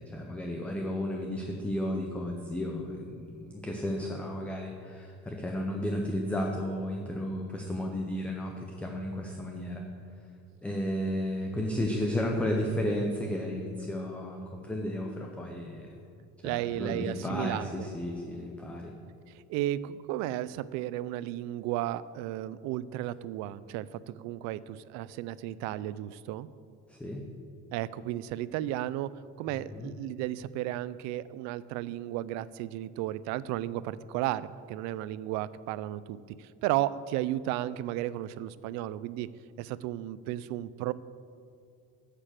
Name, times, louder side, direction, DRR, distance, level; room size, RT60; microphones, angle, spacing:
voice 1, 0.0-9.8 10.6-16.0 16.4-18.9 26.9-27.2 29.7-29.9, left 1 dB, 5° left, 1 dB, 0.6 m, -33 dB
voice 2, 16.4-17.7 19.5-26.5 27.7-29.1 29.4-39.3 39.6-40.9, right 14 dB, 65° right, 17 dB, 0.4 m, -34 dB
9.6 x 6.7 x 7.5 m, 2.5 s
cardioid pair, 175°, 30 cm